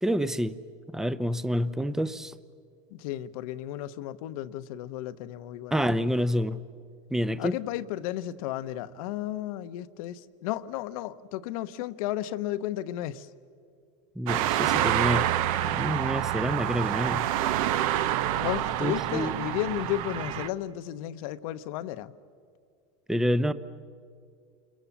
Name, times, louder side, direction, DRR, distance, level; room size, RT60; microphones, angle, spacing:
voice 1, 0.0-0.6 0.9-2.3 5.7-6.6 7.1-7.6 14.2-15.3 15.6-17.3 18.8-19.3 23.1-23.5, equal, ahead, 0.6 m, -28 dB
voice 2, 2.9-6.2 7.4-13.3 18.4-22.1, left 13 dB, 70° left, 1.0 m, -33 dB
sound 1, 14.3-20.5, right 12 dB, 65° right, 0.9 m, -27 dB
29.0 x 22.5 x 7.3 m
supercardioid pair, 120°, 19 cm